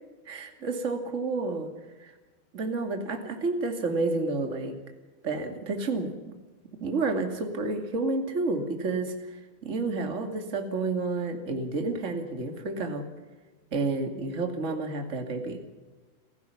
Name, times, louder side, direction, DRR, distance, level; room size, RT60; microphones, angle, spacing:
voice 1, 0.3-1.7 2.5-4.8 5.2-6.1 6.8-13.0 13.7-15.6, right 3 dB, 25° right, 5 dB, 2.2 m, -30 dB
29.5 x 15.5 x 5.8 m, 1.2 s
omnidirectional pair, 4.2 m